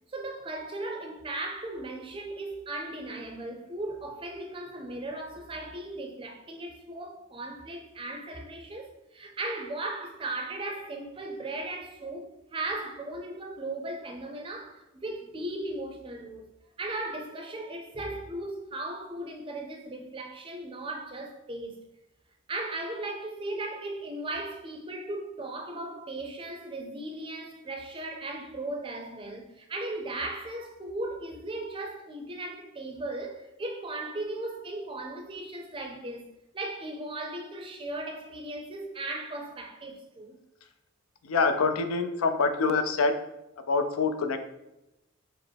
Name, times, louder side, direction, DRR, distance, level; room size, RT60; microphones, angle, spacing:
voice 1, 0.1-16.5 16.8-21.8 22.5-36.3 36.5-40.4, right 2 dB, 25° right, 0.5 m, -37 dB
voice 2, 41.2-43.1 43.7-44.4, left 4 dB, 85° left, 0.5 m, -25 dB
5.0 x 2.0 x 4.4 m
head